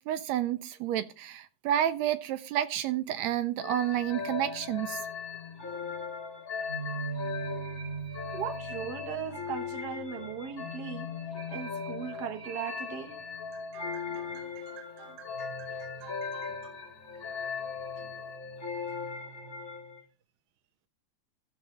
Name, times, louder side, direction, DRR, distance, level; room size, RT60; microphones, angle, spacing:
voice 1, 0.1-5.0, right 11 dB, 80° right, 1.7 m, -30 dB
sound 1, 3.6-20.0, left 4 dB, 35° left, 1.9 m, -38 dB
voice 2, 8.3-11.1 11.5-13.2 13.5-16.7, right 8 dB, 60° right, 1.0 m, -40 dB
14.0 x 7.3 x 3.0 m
omnidirectional pair, 3.3 m